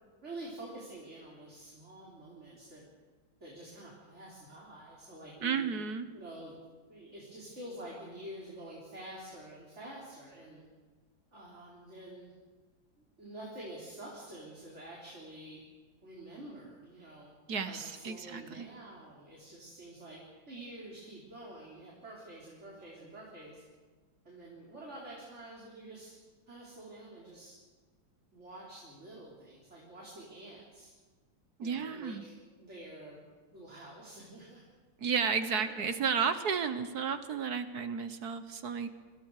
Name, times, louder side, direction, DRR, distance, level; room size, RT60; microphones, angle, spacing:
voice 1, 0.2-2.8 3.4-5.7 6.1-6.6 6.9-10.6 11.3-12.3 13.0-15.6 16.0-17.3 17.7-20.2 20.5-23.6 24.2-26.1 26.5-27.6 28.3-30.9 31.6-33.2 33.5-34.6 35.5-35.9, right 1 dB, 35° right, -4 dB, 4.4 m, -48 dB
voice 2, 5.4-6.1 17.5-18.7 31.6-32.2 35.0-38.9, right 6 dB, 60° right, 10 dB, 1.7 m, -33 dB
29.0 x 25.5 x 4.9 m, 1.4 s
omnidirectional pair, 2.0 m